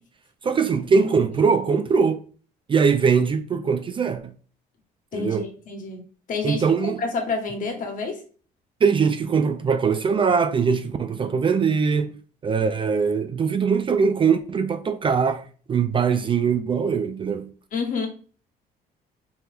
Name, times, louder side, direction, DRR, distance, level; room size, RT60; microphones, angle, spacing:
voice 1, 0.4-2.2 2.7-4.3 5.1-5.5 6.4-7.0 8.8-12.1 12.4-17.5, right 5 dB, 30° right, 0.4 m, -21 dB
voice 2, 5.1-6.0 6.3-8.2 12.6-12.7 17.7-18.1, left 4 dB, 50° left, 1.3 m, -29 dB
4.4 x 2.2 x 3.3 m
cardioid pair, 110°, 17 cm